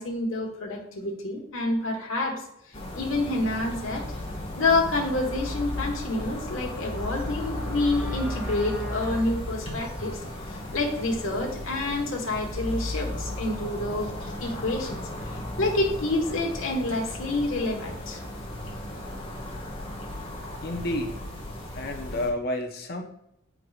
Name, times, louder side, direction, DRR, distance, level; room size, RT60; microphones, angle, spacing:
voice 1, 0.0-4.1 4.6-14.1 14.4-18.2, left 2 dB, 75° left, -1 dB, 1.4 m, -28 dB
sound 1, 2.7-22.3, left 1 dB, 25° left, 1.4 m, -35 dB
sound 2, 4.9-12.3, equal, 5° right, 0.7 m, -46 dB
voice 2, 20.6-21.3 21.7-23.0, left 1 dB, 50° left, 3 dB, 0.8 m, -30 dB
9.5 x 4.6 x 2.4 m, 0.77 s
head